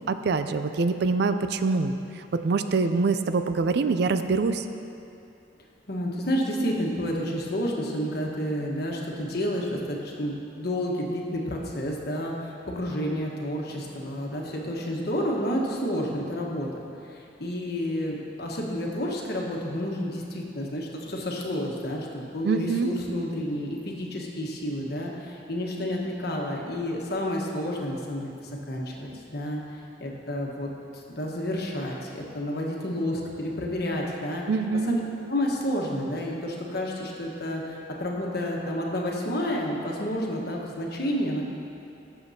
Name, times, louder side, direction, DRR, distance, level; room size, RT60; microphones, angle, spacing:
voice 1, 0.1-2.0 2.3-4.6 22.4-23.0 34.5-35.1, right 4 dB, 60° right, 9 dB, 0.4 m, -25 dB
voice 2, 5.9-16.7 17.4-28.3 28.7-29.6 30.0-30.7 31.1-34.4 34.9-35.0 35.3-41.4, equal, 60° left, -1 dB, 1.3 m, -30 dB
17.0 x 6.9 x 2.8 m, 2.7 s
head